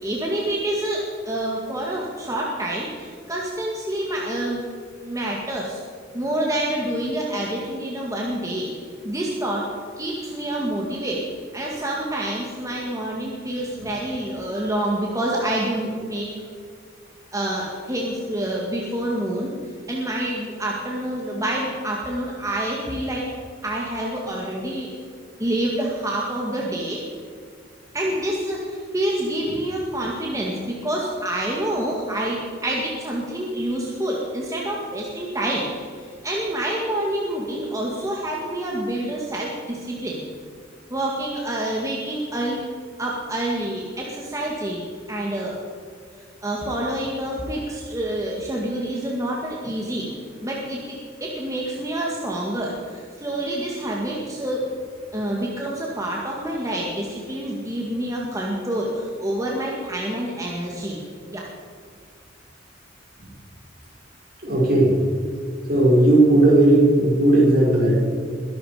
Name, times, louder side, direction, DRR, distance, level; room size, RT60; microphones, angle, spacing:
voice 1, 0.0-4.6 5.0-5.8 6.1-8.7 9.0-9.7 10.0-11.3 11.5-16.3 17.3-19.5 19.9-23.3 23.6-24.9 25.4-27.0 27.9-35.7 35.9-40.2 40.9-42.6 43.0-45.5 46.4-50.1 50.4-54.7 55.1-61.0 61.3-61.5, right 1 dB, 15° right, -3 dB, 2.0 m, -27 dB
voice 2, 64.4-65.0 65.7-68.0, right 1 dB, 50° right, -3 dB, 5.4 m, -16 dB
22.0 x 11.5 x 5.1 m, 2.2 s
head